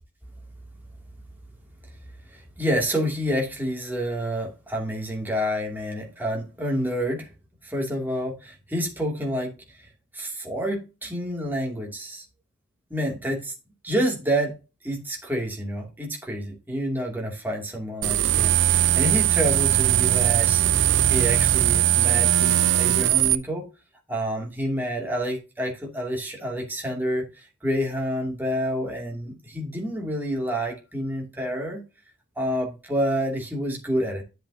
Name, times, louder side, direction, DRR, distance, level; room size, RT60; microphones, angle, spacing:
voice 1, 2.3-7.3 7.6-12.2 12.9-13.5 13.8-14.6 14.8-23.7 24.1-31.8 32.4-34.2, equal, 10° right, 2.5 m, -28 dB
sound 1, 18.0-23.3, right 11 dB, 65° right, 0.6 m, -20 dB
10.5 x 7.7 x 2.8 m
head